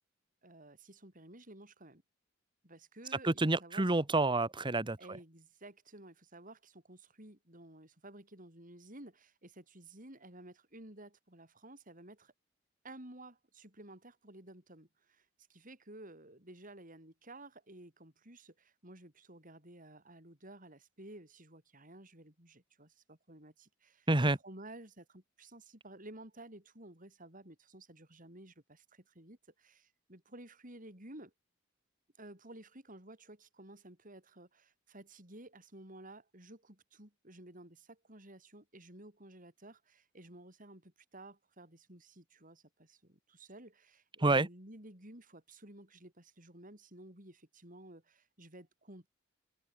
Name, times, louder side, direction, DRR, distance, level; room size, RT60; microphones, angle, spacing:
voice 1, 0.4-2.0 2.6-3.9 5.0-12.3 12.8-31.3 32.2-49.1, right 1 dB, 40° right, 8.0 m, -54 dB
voice 2, 3.2-5.0 24.1-24.4 44.2-44.5, right 2 dB, 25° right, 1.2 m, -28 dB
head